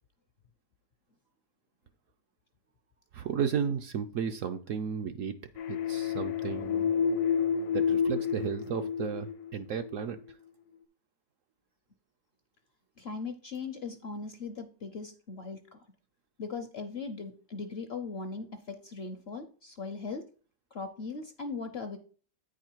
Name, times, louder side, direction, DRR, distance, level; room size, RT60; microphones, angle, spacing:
voice 1, 3.1-5.4 5.7-6.9 7.7-10.2, right 7 dB, 70° right, 8 dB, 0.8 m, -33 dB
sound 1, 5.6-10.1, left 7 dB, 75° left, 1.3 m, -30 dB
voice 2, 13.0-15.8 16.4-20.3 20.7-22.0, left 4 dB, 55° left, 7 dB, 0.7 m, -39 dB
8.7 x 4.8 x 4.5 m, 0.40 s
omnidirectional pair, 1.7 m